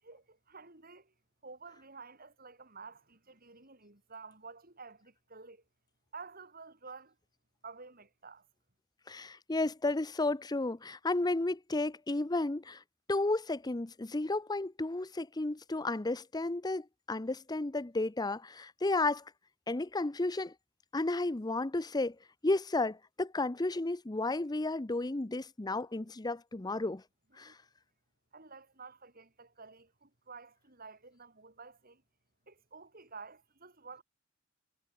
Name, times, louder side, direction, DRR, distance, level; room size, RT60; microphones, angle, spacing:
voice 1, 0.0-1.1 1.4-5.6 6.1-7.2 7.6-8.5 27.4-27.5 28.3-32.0 32.5-34.0, right 4 dB, 45° right, 7.2 m, -51 dB
voice 2, 9.1-12.8 13.1-19.2 19.7-20.5 20.9-22.2 22.4-27.0 27.4-27.5, left 2 dB, 20° left, 0.7 m, -33 dB
head